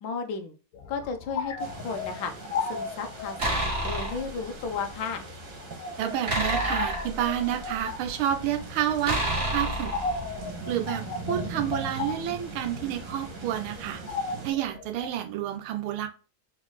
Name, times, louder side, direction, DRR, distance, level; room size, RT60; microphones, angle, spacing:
voice 1, 0.0-0.5 0.9-2.3 2.6-5.3, left 5 dB, 70° left, 6 dB, 1.4 m, -34 dB
sound 1, 0.7-15.1, left 4 dB, 55° left, 1.0 m, -37 dB
sound 2, 1.6-14.5, right 4 dB, 60° right, 1.9 m, -41 dB
sound 3, 3.4-4.3 6.3-7.8 9.0-10.5, right 1 dB, 30° right, 1.5 m, -29 dB
voice 2, 6.0-9.2 9.5-9.9 10.7-14.0 14.4-16.1, right 11 dB, 85° right, 6 dB, 1.6 m, -29 dB
4.1 x 3.9 x 3.1 m, 0.34 s
omnidirectional pair, 2.2 m